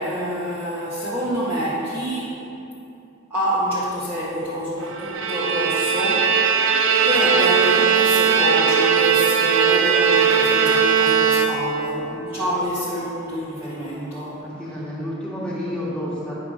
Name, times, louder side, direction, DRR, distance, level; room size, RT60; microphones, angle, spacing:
voice 1, 0.0-2.4 3.3-6.4 7.0-14.4, equal, 10° right, -12 dB, 1.6 m, -26 dB
Bowed string instrument, 5.0-11.9, right 7 dB, 70° right, 0.6 m, -19 dB
voice 2, 14.4-16.4, equal, 5° left, -8 dB, 2.4 m, -30 dB
9.7 x 5.8 x 6.4 m, 2.7 s
head